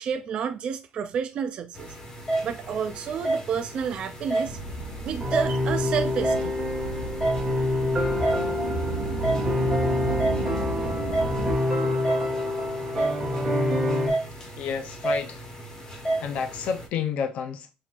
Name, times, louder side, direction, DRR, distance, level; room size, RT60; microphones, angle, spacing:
voice 1, 0.0-1.9 2.4-4.6 5.0-6.5 7.0-7.4 7.7-7.8, right 7 dB, 35° right, 0.3 m, -30 dB
sound 1, 1.7-16.9, right 2 dB, 25° left, 1.2 m, -32 dB
sound 2, 4.4-11.5, right 3 dB, 70° right, 1.2 m, -33 dB
sound 3, 5.2-14.1, left 1 dB, 15° right, 1.5 m, -26 dB
voice 2, 14.4-15.4 15.9-17.7, left 7 dB, 50° left, 0.5 m, -31 dB
6.1 x 2.9 x 2.4 m
cardioid pair, 170°, 3 cm